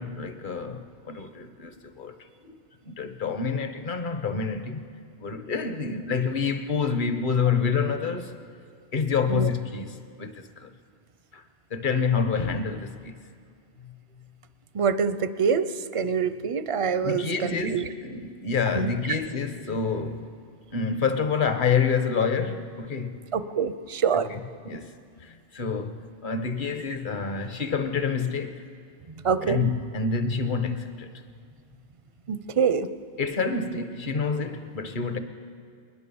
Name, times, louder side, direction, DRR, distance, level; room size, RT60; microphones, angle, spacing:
voice 1, 0.0-2.1 2.4-2.6 2.9-4.9 5.2-8.4 8.9-10.7 11.3-11.4 11.7-13.1 13.8-13.9 17.0-20.3 20.7-23.2 24.3-24.4 24.6-28.6 29.4-31.1 33.2-35.2, left 5 dB, 45° left, 1.3 m, -28 dB
voice 2, 14.7-17.9 18.7-19.0 23.3-24.3 29.2-29.6 32.3-32.9, right 6 dB, 35° right, 0.6 m, -25 dB
21.0 x 20.0 x 7.0 m
omnidirectional pair, 1.2 m